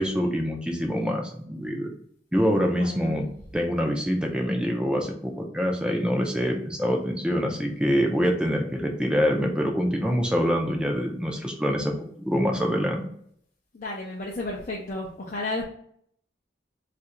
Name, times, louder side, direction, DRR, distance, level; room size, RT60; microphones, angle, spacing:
voice 1, 0.0-1.9 2.3-3.3 3.5-13.1, equal, 5° right, 2 dB, 0.5 m, -25 dB
voice 2, 2.7-3.2 13.7-15.6, left 2 dB, 45° left, -3 dB, 0.5 m, -32 dB
2.7 x 2.5 x 4.2 m, 0.66 s
head